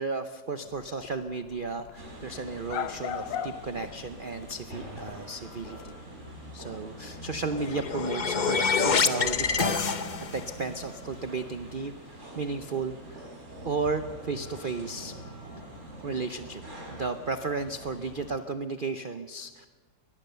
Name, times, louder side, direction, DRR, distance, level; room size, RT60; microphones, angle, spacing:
voice 1, 0.0-5.9 6.5-10.0 10.3-13.3 13.6-15.1 16.0-16.6 16.9-19.7, right 4 dB, 85° right, 9 dB, 0.4 m, -34 dB
sound 1, 0.6-6.0, left 9 dB, 75° left, 1.5 m, -38 dB
sound 2, 2.0-18.4, right 1 dB, 35° right, 4.5 m, -44 dB
sound 3, 7.5-10.5, left 5 dB, 50° left, 0.5 m, -26 dB
22.5 x 18.5 x 6.8 m, 1.4 s
omnidirectional pair, 2.0 m